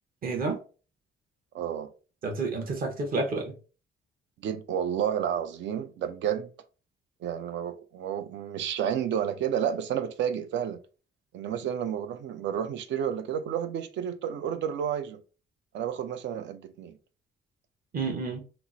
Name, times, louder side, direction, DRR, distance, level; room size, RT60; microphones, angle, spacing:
voice 1, 0.2-0.6 2.2-3.5 17.9-18.4, right 3 dB, 50° right, 0.8 m, -30 dB
voice 2, 1.5-1.9 4.4-6.5 7.2-10.8 11.3-15.2 15.7-17.0, right 9 dB, 70° right, 0.5 m, -31 dB
2.9 x 2.0 x 3.7 m
cardioid pair, 80°, 19 cm